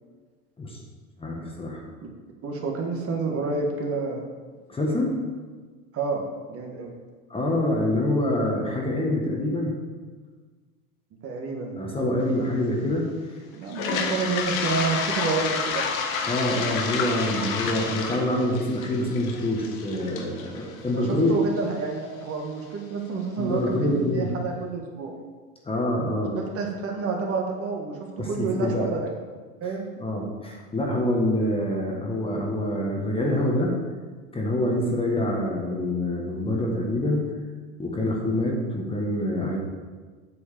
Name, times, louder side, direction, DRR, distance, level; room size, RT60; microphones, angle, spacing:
voice 1, 1.2-1.8 4.7-5.2 7.3-9.8 11.8-13.1 16.2-21.3 23.4-24.3 25.6-26.4 28.2-28.9 30.0-33.7 34.3-37.3 37.8-39.6, left 1 dB, 15° left, -1 dB, 1.5 m, -26 dB
voice 2, 2.4-4.2 5.9-6.9 11.2-11.8 13.5-15.9 20.9-25.1 26.3-29.1 29.6-29.9, right 4 dB, 35° right, 1 dB, 1.6 m, -29 dB
Toilet flush, 13.7-21.6, left 5 dB, 80° left, 1.5 m, -30 dB
8.5 x 4.6 x 7.4 m, 1.4 s
supercardioid pair, 125°, 40 cm